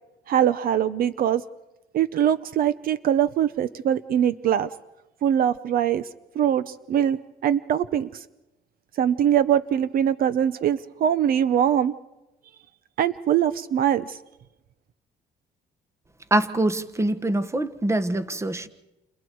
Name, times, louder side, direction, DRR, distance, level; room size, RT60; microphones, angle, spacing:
voice 1, 0.3-1.4 1.9-4.7 5.2-6.1 6.3-8.2 9.0-11.9 13.0-14.2, right 9 dB, 60° right, 14 dB, 0.8 m, -22 dB
voice 2, 16.3-18.7, right 1 dB, 15° right, 11 dB, 1.4 m, -24 dB
29.5 x 28.0 x 4.7 m, 1.0 s
cardioid pair, 110°, 17 cm